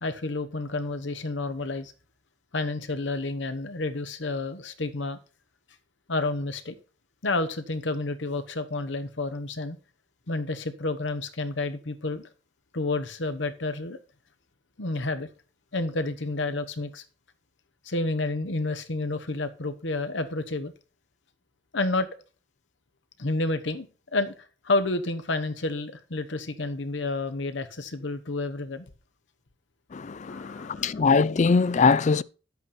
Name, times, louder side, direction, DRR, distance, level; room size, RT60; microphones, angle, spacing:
voice 1, 0.0-1.9 2.5-5.2 6.1-6.8 7.2-9.8 10.3-12.3 12.7-14.0 14.8-15.3 15.7-17.0 17.8-20.7 21.7-22.1 23.2-23.9 24.1-24.3 24.6-28.8 30.3-30.9, left 2 dB, 70° left, 1.1 m, -30 dB
voice 2, 29.9-32.2, left 4 dB, 40° left, 0.4 m, -22 dB
10.5 x 8.2 x 4.3 m
head